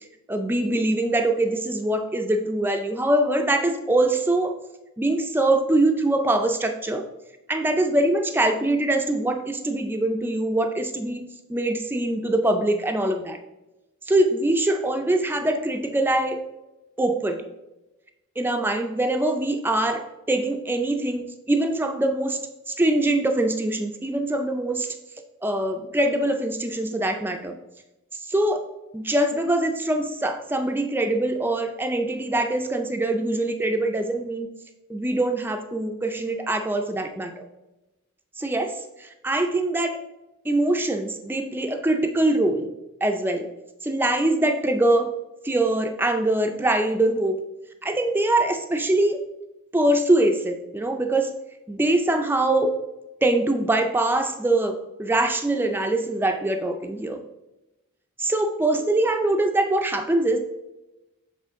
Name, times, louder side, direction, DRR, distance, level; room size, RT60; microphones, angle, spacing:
voice 1, 0.3-4.5 5.0-7.0 7.5-13.4 14.1-16.4 17.0-17.5 18.4-22.4 22.7-24.9 25.4-27.5 28.3-28.6 28.9-34.5 34.9-37.3 38.4-38.7 39.0-40.0 40.5-42.7 43.0-43.5 43.8-45.1 45.4-47.4 47.8-49.2 49.7-51.3 51.7-52.7 53.2-57.2 58.2-60.4, right 1 dB, 10° right, 5 dB, 0.3 m, -23 dB
7.4 x 3.7 x 3.6 m, 0.99 s
head